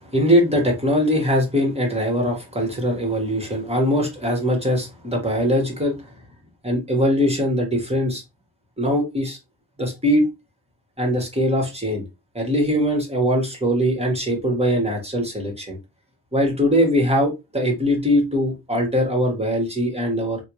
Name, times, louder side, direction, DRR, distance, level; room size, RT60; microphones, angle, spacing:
voice 1, 0.0-6.0 6.6-8.2 8.8-9.4 9.8-10.3 11.0-12.0 12.3-15.8 16.3-20.4, equal, 15° right, 1.6 m, -21 dB
3.5 x 2.6 x 3.1 m
cardioid pair, 75°, 39 cm